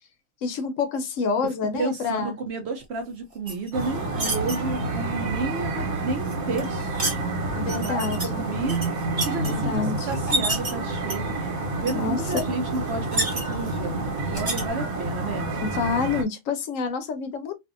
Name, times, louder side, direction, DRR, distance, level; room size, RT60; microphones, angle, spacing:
voice 1, 0.4-2.4 7.5-8.4 9.4-10.1 11.9-12.5 15.6-17.6, left 5 dB, 70° left, 0.9 m, -28 dB
voice 2, 1.4-8.8 9.2-11.4 11.8-15.5, right 3 dB, 65° right, 0.7 m, -32 dB
sound 1, 3.5-4.6 6.3-7.2 7.7-8.3 8.6-9.5 10.1-10.7 11.1-11.5 11.9-12.0 12.2-12.4 12.7-13.8 14.3-14.6, right 1 dB, 30° right, 0.9 m, -28 dB
sound 2, 3.7-16.2, right 2 dB, 90° right, 1.3 m, -29 dB
2.6 x 2.4 x 2.4 m
omnidirectional pair, 1.4 m